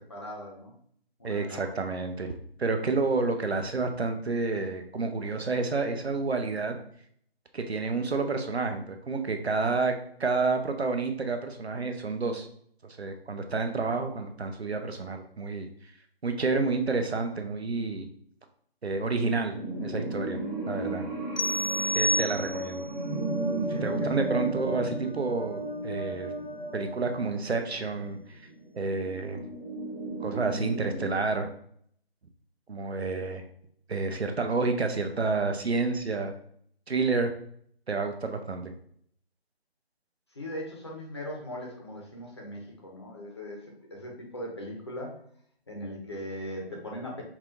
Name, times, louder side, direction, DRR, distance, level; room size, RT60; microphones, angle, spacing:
voice 1, 0.1-0.7 1.2-1.7 23.7-24.1 40.3-45.2 45.7-47.2, equal, 25° left, -1 dB, 0.6 m, -39 dB
voice 2, 1.2-2.3 2.6-6.8 7.5-9.9 10.2-12.5 12.8-15.7 16.2-18.1 18.8-20.4 20.7-21.1 21.9-22.8 23.8-26.3 26.7-28.5 28.8-29.4 30.2-31.5 32.7-33.4 33.9-36.3 36.9-37.3 37.9-38.7, right 3 dB, 85° right, 6 dB, 0.7 m, -29 dB
sound 1, 19.5-31.1, right 2 dB, 15° right, 0.6 m, -36 dB
sound 2, 21.1-27.9, equal, 50° right, 1.3 m, -37 dB
sound 3, 21.4-22.9, equal, 70° left, 0.5 m, -28 dB
5.6 x 2.4 x 2.5 m, 0.65 s
figure-of-eight pair, 155°, 31 cm